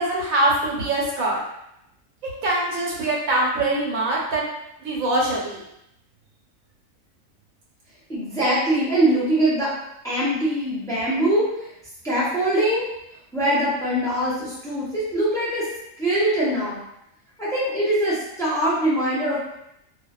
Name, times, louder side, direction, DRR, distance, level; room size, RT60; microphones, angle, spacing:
voice 1, 0.0-1.4 2.4-4.4 4.8-5.6, right 1 dB, 80° right, -4 dB, 1.2 m, -23 dB
voice 2, 8.1-9.7 10.0-11.7 12.0-12.9 13.3-15.7 16.0-16.8 17.4-19.4, right 1 dB, 5° left, -9 dB, 0.5 m, -22 dB
2.4 x 2.3 x 2.2 m, 0.80 s
omnidirectional pair, 1.4 m